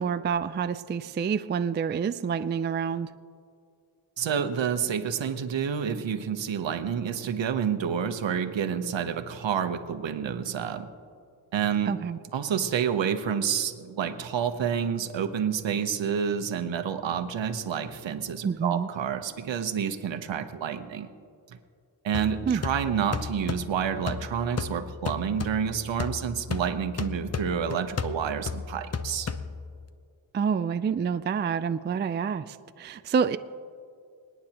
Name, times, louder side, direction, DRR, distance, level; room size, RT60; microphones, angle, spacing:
voice 1, 0.0-3.1 11.9-12.2 18.4-18.9 22.5-22.6 30.3-33.4, right 6 dB, 25° right, 12 dB, 0.3 m, -28 dB
voice 2, 4.2-10.9 11.5-11.9 12.3-21.1 21.5-21.6 22.0-29.3, right 7 dB, 70° right, 8 dB, 1.0 m, -29 dB
sound 1, 22.1-29.9, left 5 dB, 35° left, 0.7 m, -35 dB
27.5 x 9.5 x 2.9 m, 2.3 s
cardioid pair, 75°, 46 cm